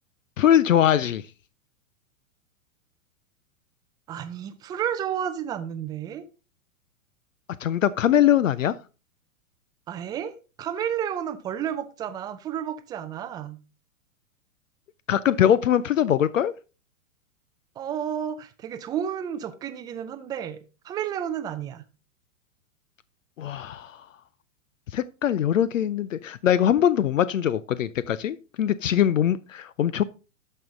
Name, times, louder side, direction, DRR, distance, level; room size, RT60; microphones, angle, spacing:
voice 1, 0.4-1.2 7.6-8.8 15.1-16.5 23.4-24.0 24.9-30.0, left 10 dB, 70° left, 0.6 m, -22 dB
voice 2, 4.1-6.3 9.9-13.6 17.8-21.8, right 9 dB, 10° right, 0.4 m, -31 dB
12.0 x 5.5 x 3.7 m
figure-of-eight pair, 105°, 41 cm